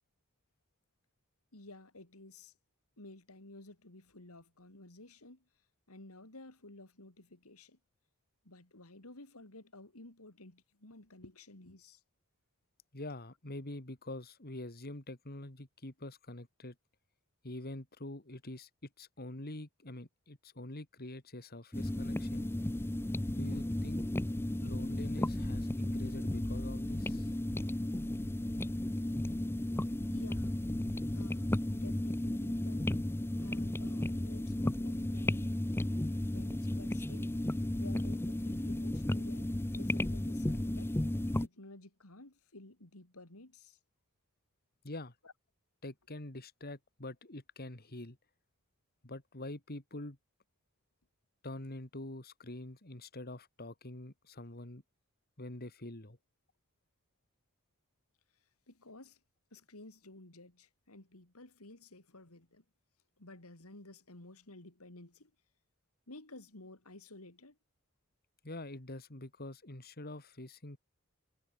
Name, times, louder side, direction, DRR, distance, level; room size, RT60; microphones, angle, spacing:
voice 1, 1.5-2.5 3.0-5.4 5.9-7.8 8.4-12.0 30.1-30.6 31.1-32.9 33.4-35.6 36.3-41.0 41.4-43.8 45.2-45.3 58.7-59.2 59.5-62.6 63.2-65.3 66.1-67.6, left 2 dB, 75° left, 3.5 m, -53 dB
voice 2, 12.9-16.7 17.4-18.7 19.0-22.5 23.3-24.1 24.6-27.3 44.8-45.1 45.8-48.2 49.0-50.2 51.4-54.8 55.4-56.2 68.4-70.8, left 1 dB, 45° left, 2.9 m, -45 dB
sound 1, 21.7-41.5, left 1 dB, 10° left, 0.5 m, -34 dB
head